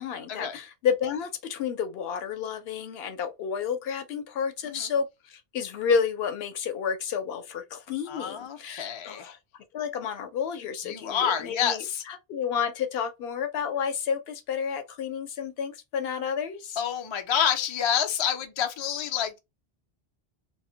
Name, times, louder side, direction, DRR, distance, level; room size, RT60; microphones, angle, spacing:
voice 1, 0.0-9.4 9.7-16.8, left 7 dB, 70° left, 0.8 m, -30 dB
voice 2, 8.1-9.4 10.8-12.0 16.8-19.4, left 8 dB, 45° left, 0.3 m, -28 dB
2.2 x 2.1 x 3.7 m
omnidirectional pair, 1.1 m